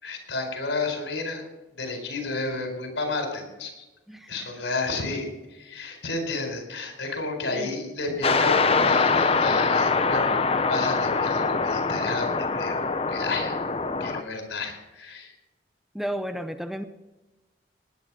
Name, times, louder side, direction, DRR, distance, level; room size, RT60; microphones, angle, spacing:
voice 1, 0.0-1.4 1.7-3.8 4.3-13.5 14.0-15.3, left 3 dB, 80° left, 4 dB, 4.4 m, -32 dB
voice 2, 4.1-4.7 7.4-7.7 15.9-16.8, equal, ahead, 9 dB, 0.6 m, -33 dB
sound 1, 8.2-14.2, left 4 dB, 30° left, 0.7 m, -23 dB
19.0 x 10.0 x 6.1 m, 1.1 s
head